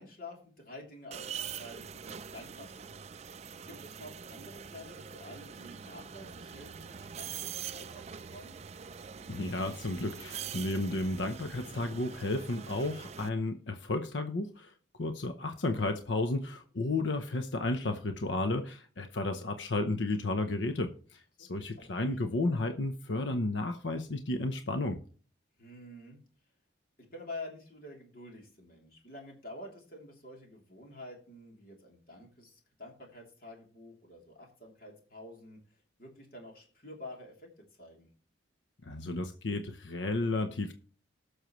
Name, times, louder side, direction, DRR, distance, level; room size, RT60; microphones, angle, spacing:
voice 1, 0.0-3.0 3.7-8.0 8.3-8.6 21.4-22.0 25.6-26.2 27.1-35.6 36.0-37.5 37.8-38.1, left 1 dB, 50° left, 3.1 m, -48 dB
sound 1, 1.1-13.3, right 7 dB, 35° right, 0.4 m, -44 dB
voice 2, 9.3-14.7 15.0-25.0 38.8-40.7, left 2 dB, 75° left, 0.8 m, -33 dB
19.5 x 6.5 x 3.1 m
head